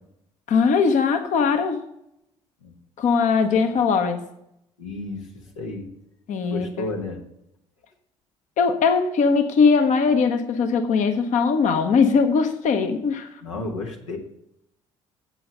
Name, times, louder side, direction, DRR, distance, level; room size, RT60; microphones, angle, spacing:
voice 1, 0.5-1.8 3.0-4.2 6.3-6.9 8.6-13.3, left 5 dB, 50° left, 7 dB, 1.0 m, -20 dB
voice 2, 3.7-4.1 4.8-5.9 6.5-7.2 13.4-14.2, left 2 dB, 85° left, 1 dB, 1.2 m, -33 dB
7.7 x 6.3 x 8.0 m, 0.80 s
figure-of-eight pair, 50°, 16 cm